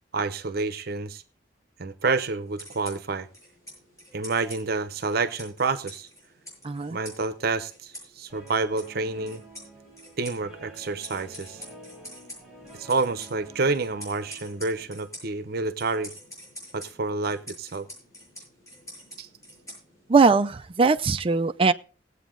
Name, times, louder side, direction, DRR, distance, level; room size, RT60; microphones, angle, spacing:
voice 1, 0.1-1.2 1.8-3.3 4.1-6.1 6.9-9.4 10.2-11.6 12.8-16.1 16.7-17.9 19.2-19.3, right 3 dB, 60° right, 0.8 m, -28 dB
sound 1, 2.5-20.2, equal, 20° left, 7.6 m, -47 dB
voice 2, 6.6-7.0 20.1-21.7, right 4 dB, 30° right, 0.5 m, -20 dB
Guitar, 8.3-14.8, right 2 dB, ahead, 4.7 m, -49 dB
19.0 x 8.2 x 3.8 m
head